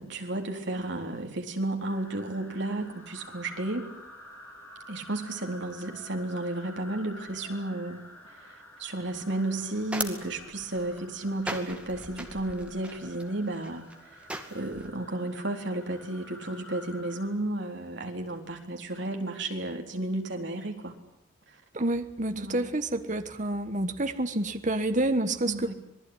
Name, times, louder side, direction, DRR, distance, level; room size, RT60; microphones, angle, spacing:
voice 1, 0.0-3.9 4.9-8.0 8.3-14.2 14.5-20.9 21.5-21.6 22.4-22.7 25.5-25.7, right 2 dB, 55° right, 3 dB, 4.0 m, -33 dB
sound 1, 1.8-17.3, left 1 dB, 10° left, 5.4 m, -50 dB
sound 2, 9.3-14.9, right 1 dB, 5° right, 2.2 m, -40 dB
voice 2, 21.7-25.7, right 2 dB, 35° right, 8 dB, 1.4 m, -28 dB
27.0 x 20.0 x 9.9 m, 0.75 s
head